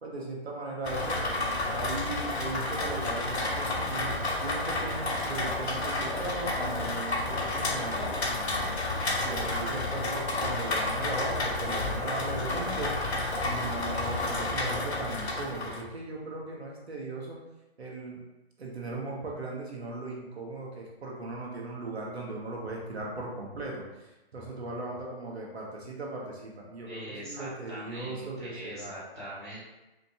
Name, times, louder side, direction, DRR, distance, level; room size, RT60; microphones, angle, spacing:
voice 1, 0.0-1.3 1.7-17.4 17.8-18.2 18.6-28.9, right 2 dB, 75° right, -2 dB, 1.2 m, -38 dB
Rain, 0.8-15.8, left 2 dB, 80° left, 0.9 m, -31 dB
voice 2, 26.8-29.6, equal, 5° right, -20 dB, 0.3 m, -42 dB
4.3 x 2.6 x 2.9 m, 1.0 s
hypercardioid pair, 145°, 32 cm